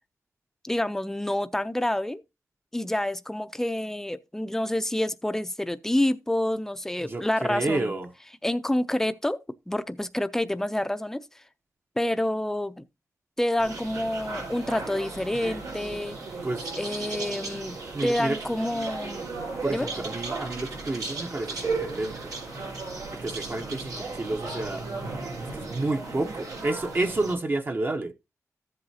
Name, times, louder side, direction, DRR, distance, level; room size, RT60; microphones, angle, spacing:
voice 1, 0.6-2.2 2.7-7.9 8.4-9.4 9.7-11.2 12.0-12.8 13.4-16.2 16.8-19.3 19.7-19.9, left 1 dB, 5° left, 0.5 m, -28 dB
voice 2, 7.0-8.1 16.4-16.6 17.9-18.4 19.6-22.3 23.1-24.9 25.5-28.1, right 2 dB, 35° right, 0.9 m, -30 dB
sound 1, 13.6-27.3, right 3 dB, 90° right, 4.4 m, -35 dB
14.0 x 7.8 x 2.8 m
wide cardioid pair, 150°, 6 cm